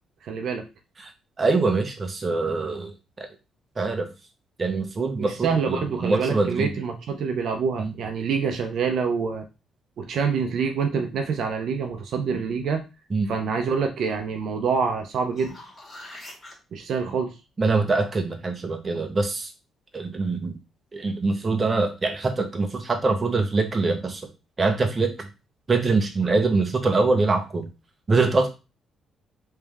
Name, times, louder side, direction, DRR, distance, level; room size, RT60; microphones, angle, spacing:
voice 1, 0.2-0.6 5.2-9.5 10.0-12.9 13.3-15.6 16.7-17.3, right 5 dB, 70° right, 4 dB, 0.6 m, -26 dB
voice 2, 1.4-2.9 3.8-4.1 4.6-6.7 7.8-7.9 13.1-13.3 17.6-19.5 19.9-20.6 20.9-24.2 24.6-25.3 25.7-27.6 28.1-28.5, right 3 dB, 30° right, 4 dB, 1.0 m, -24 dB
sound 1, 15.1-16.5 21.3-21.4, left 1 dB, 25° left, 2.2 m, -43 dB
3.4 x 3.3 x 3.4 m, 0.29 s
cardioid pair, 90°, 0 cm